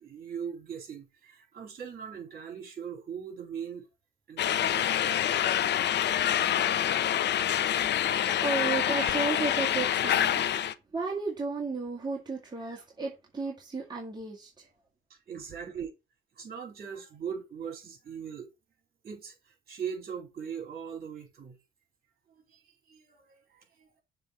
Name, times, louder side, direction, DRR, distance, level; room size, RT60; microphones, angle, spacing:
voice 1, 0.0-3.9 4.3-5.3 7.7-7.8 8.9-9.1 15.1-15.9 16.4-18.5 19.0-21.6 22.3-22.6 22.9-23.9, right 7 dB, 50° right, 4.0 m, -40 dB
sound 1, 4.4-10.7, left 10 dB, 60° left, 0.7 m, -26 dB
voice 2, 7.8-10.4 10.9-14.7, right 4 dB, 20° right, 2.0 m, -34 dB
6.8 x 3.8 x 6.3 m
cardioid pair, 90°, 20 cm